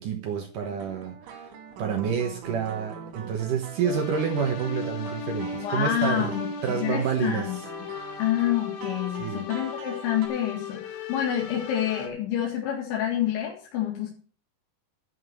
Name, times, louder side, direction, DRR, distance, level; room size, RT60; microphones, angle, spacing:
voice 1, 0.0-1.4 1.8-6.3 6.6-7.5 9.2-9.5, right 7 dB, 65° right, 5 dB, 2.2 m, -28 dB
sound 1, 0.6-10.3, right 7 dB, 90° right, 4.7 m, -43 dB
sound 2, 3.8-12.1, left 5 dB, 65° left, 3.1 m, -36 dB
voice 2, 5.5-7.6 8.2-14.1, left 10 dB, 85° left, -3 dB, 4.4 m, -28 dB
11.0 x 5.9 x 7.7 m, 0.40 s
omnidirectional pair, 5.2 m